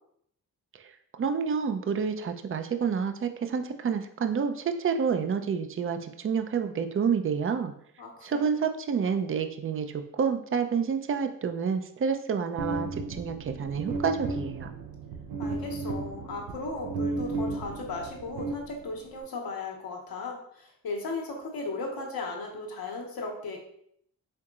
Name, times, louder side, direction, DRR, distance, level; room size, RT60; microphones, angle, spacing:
voice 1, 1.2-7.7 8.2-14.7, right 6 dB, 35° right, 8 dB, 0.5 m, -29 dB
voice 2, 8.0-8.4 15.4-23.6, left 3 dB, 70° left, 0 dB, 1.2 m, -36 dB
sound 1, 12.6-19.2, right 3 dB, 80° right, 0.7 m, -34 dB
4.6 x 3.6 x 2.4 m, 0.69 s
supercardioid pair, 50°, 37 cm